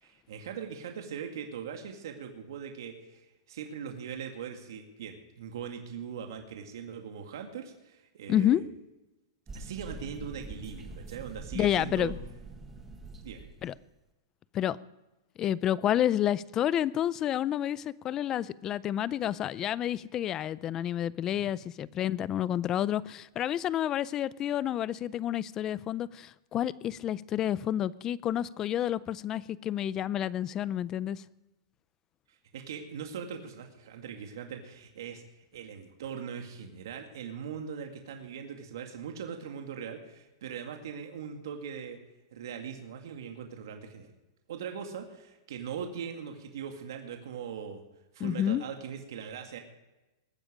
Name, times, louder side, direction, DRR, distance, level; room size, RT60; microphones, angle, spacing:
voice 1, 0.0-8.7 9.5-12.1 13.2-13.5 21.3-21.5 32.3-42.0 42.3-44.1 44.5-47.8 48.1-49.6, right 7 dB, 70° right, 2.2 m, -41 dB
voice 2, 8.3-8.6 11.5-12.2 13.6-13.7 14.5-14.8 15.4-31.2 48.2-48.6, left 11 dB, 25° left, 0.4 m, -29 dB
sound 1, 9.5-13.8, right 3 dB, 10° right, 1.3 m, -44 dB
21.5 x 10.0 x 5.1 m
supercardioid pair, 155°, 2 cm